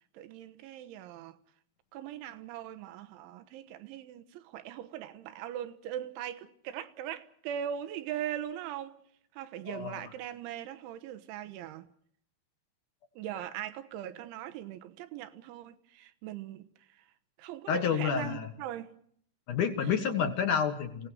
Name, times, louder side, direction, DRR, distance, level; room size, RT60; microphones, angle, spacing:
voice 1, 0.1-1.4 1.9-9.0 9.3-11.9 13.2-17.0 17.4-18.9, right 10 dB, 80° right, 3.5 m, -40 dB
voice 2, 9.7-10.0 17.7-18.5 19.5-21.1, left 7 dB, 60° left, 2.3 m, -29 dB
28.0 x 17.5 x 6.4 m
omnidirectional pair, 5.5 m